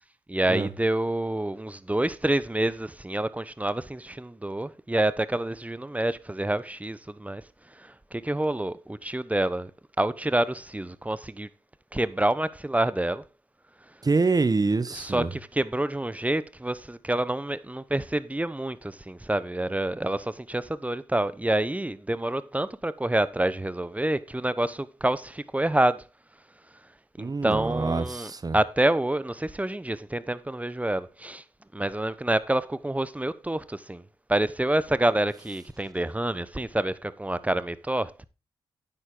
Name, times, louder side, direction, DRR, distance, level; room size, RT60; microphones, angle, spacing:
voice 1, 0.3-7.4 7.7-9.7 10.0-11.5 11.9-13.2 14.9-26.0 27.2-31.4 31.7-34.0 34.3-38.3, right 1 dB, 10° right, 0.9 m, -27 dB
voice 2, 14.0-15.3 27.2-28.6, right 3 dB, 35° right, 1.2 m, -25 dB
9.9 x 8.1 x 3.8 m
supercardioid pair, 50°, 11 cm